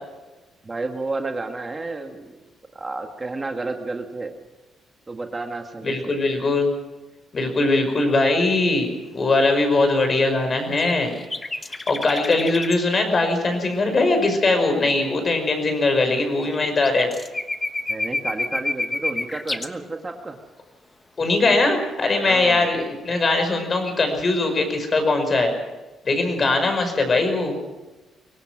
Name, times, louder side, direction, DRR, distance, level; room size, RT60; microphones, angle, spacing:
voice 1, 0.6-2.4 2.7-4.3 5.1-6.2 17.9-20.4 22.2-22.7, right 3 dB, 25° right, 4 dB, 1.7 m, -31 dB
voice 2, 5.8-6.7 7.3-11.1 11.9-17.1 21.2-25.5 26.0-27.6, left 2 dB, 35° left, 6 dB, 5.5 m, -21 dB
sound 1, 10.6-12.8 16.4-16.6 16.8-19.7, left 2 dB, 20° left, 1.2 m, -29 dB
23.5 x 17.5 x 6.2 m, 1.1 s
cardioid pair, 90°, 0 cm